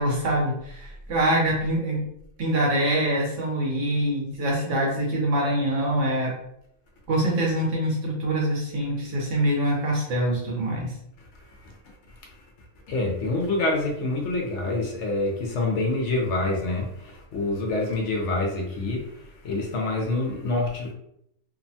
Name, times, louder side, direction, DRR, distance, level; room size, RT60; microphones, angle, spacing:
voice 1, 0.0-2.0 2.4-6.3 7.1-10.9, right 1 dB, 70° right, -2 dB, 1.2 m, -24 dB
voice 2, 12.9-20.9, left 2 dB, 65° left, 0 dB, 0.9 m, -26 dB
2.8 x 2.1 x 2.6 m, 0.75 s
omnidirectional pair, 1.4 m